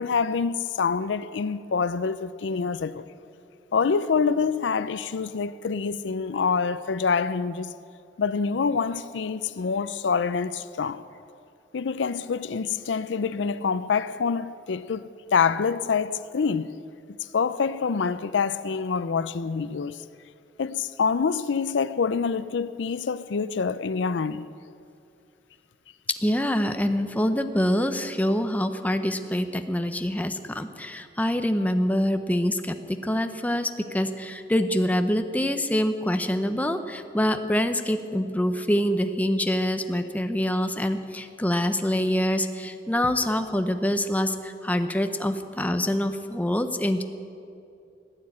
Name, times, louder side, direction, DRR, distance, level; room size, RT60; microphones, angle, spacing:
voice 1, 0.0-3.1 3.7-7.7 8.2-11.0 11.7-16.8 17.3-20.0 20.6-24.5, left 5 dB, 85° left, 0.5 m, -26 dB
voice 2, 26.2-47.0, equal, 10° left, 0.7 m, -25 dB
16.0 x 9.5 x 8.7 m
head